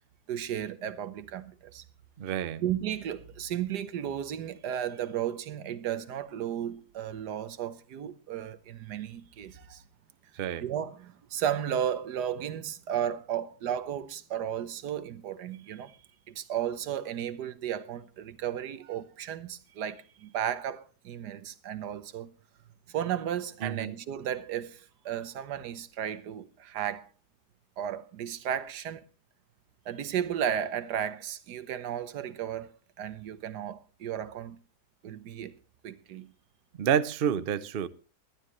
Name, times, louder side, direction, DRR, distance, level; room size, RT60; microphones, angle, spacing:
voice 1, 0.3-1.8 2.6-9.8 10.6-16.0 16.3-22.3 22.9-27.1 27.8-29.0 29.8-34.6 35.0-35.6 35.8-36.3, right 10 dB, 80° right, 1.5 m, -34 dB
voice 2, 2.2-2.6 10.4-10.6 23.6-23.9 36.8-37.9, right 9 dB, 55° right, 0.6 m, -29 dB
20.0 x 12.0 x 3.1 m
omnidirectional pair, 1.7 m